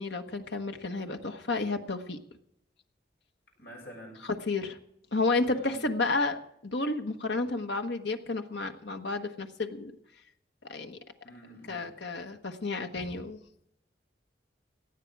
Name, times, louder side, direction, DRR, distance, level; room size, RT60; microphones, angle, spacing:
voice 1, 0.0-2.2 4.5-4.8 5.1-9.9 10.7-11.0 11.7-13.4, left 3 dB, 80° left, 5 dB, 1.3 m, -31 dB
voice 2, 3.6-4.3 5.4-5.8 11.2-12.0, equal, 65° left, 0 dB, 6.9 m, -48 dB
18.5 x 12.5 x 4.8 m, 0.76 s
head